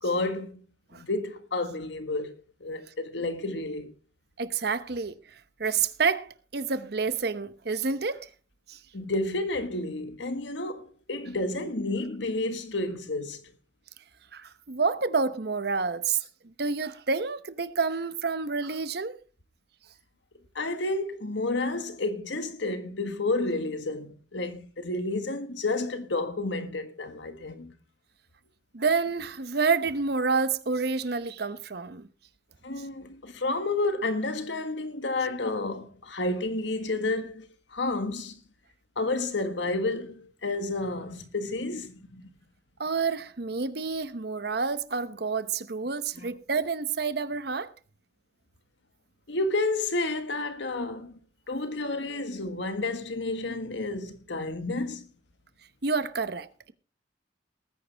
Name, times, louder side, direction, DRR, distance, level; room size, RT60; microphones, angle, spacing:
voice 1, 0.0-0.6 0.9-3.9 8.9-13.4 20.5-27.7 32.6-38.4 39.0-42.2 46.2-46.3 49.3-51.2 51.5-55.1, left 2 dB, 75° left, 1.6 m, -31 dB
voice 2, 4.4-5.2 5.6-8.3 8.7-8.8 14.3-16.3 16.6-19.2 28.7-32.1 42.8-47.7 55.8-56.5, right 4 dB, 55° right, 0.9 m, -28 dB
19.0 x 9.7 x 3.4 m
head